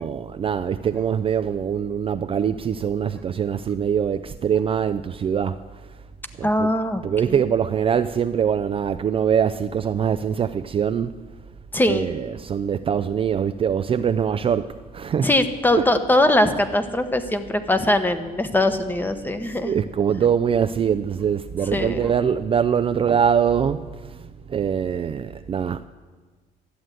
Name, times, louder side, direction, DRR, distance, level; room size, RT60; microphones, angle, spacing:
voice 1, 0.0-5.6 6.4-6.7 7.0-11.2 11.9-15.4 15.8-15.9 19.6-25.8, right 8 dB, 35° right, 0.4 m, -23 dB
voice 2, 6.4-7.0 11.7-12.1 15.2-19.7 21.7-22.1, left 1 dB, 10° left, 0.9 m, -21 dB
13.0 x 7.9 x 9.0 m
cardioid pair, 110°, 17 cm